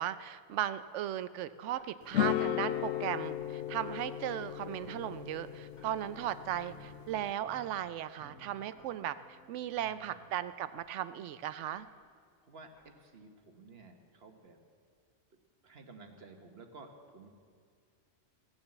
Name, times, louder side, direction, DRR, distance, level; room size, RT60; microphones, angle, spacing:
voice 1, 0.0-11.9, right 11 dB, 85° right, 13 dB, 0.9 m, -37 dB
Tick-tock, 1.7-1.9 2.7-2.9 3.7-3.9 4.7-4.9 5.7-5.9 6.7-6.9 7.7-7.9 8.7-8.9 9.7-9.9 10.7-10.9 11.7-11.9 12.7-12.9, equal, 35° left, 3.2 m, -63 dB
sound 1, 2.1-7.3, left 12 dB, 75° left, 0.9 m, -36 dB
Piano, 4.8-10.7, right 2 dB, 15° right, 0.8 m, -58 dB
voice 2, 9.8-10.3 12.4-12.7 13.0-14.6 15.6-17.3, right 3 dB, 60° right, 5 dB, 1.4 m, -53 dB
17.5 x 7.1 x 7.7 m, 2.1 s
omnidirectional pair, 1.2 m